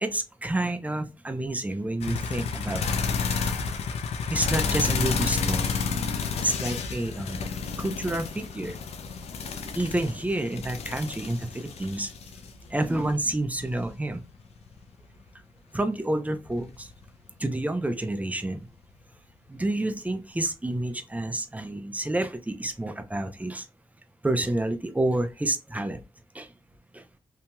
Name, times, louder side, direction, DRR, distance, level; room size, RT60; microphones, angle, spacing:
voice 1, 0.0-2.9 4.3-5.7 6.4-7.4 7.8-8.8 9.7-12.1 12.7-14.2 15.7-16.9 17.4-18.7 19.5-23.6 24.2-26.0 26.3-26.5 26.9-27.0, right 1 dB, 15° right, 7 dB, 0.6 m, -29 dB
sound 1, 2.0-14.9 16.5-17.1 18.8-18.9, left 5 dB, 80° left, 0.5 m, -30 dB
2.8 x 2.8 x 2.2 m, 0.28 s
cardioid pair, 55°, 11 cm